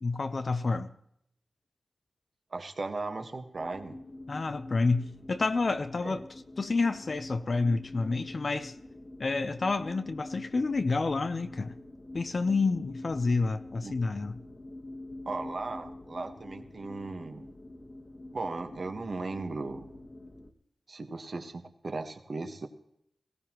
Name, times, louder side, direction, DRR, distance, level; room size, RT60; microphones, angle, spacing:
voice 1, 0.0-0.9 4.3-6.2 6.6-8.7 9.2-11.7 12.1-14.4, left 3 dB, 55° left, 0.6 m, -29 dB
voice 2, 2.5-4.0 6.0-6.2 13.8-13.9 15.2-17.5 18.3-19.9 20.9-22.7, right 3 dB, 55° right, 1.3 m, -37 dB
sound 1, 3.5-20.5, left 1 dB, 35° left, 1.4 m, -46 dB
19.0 x 16.0 x 3.0 m
cardioid pair, 60°, 0 cm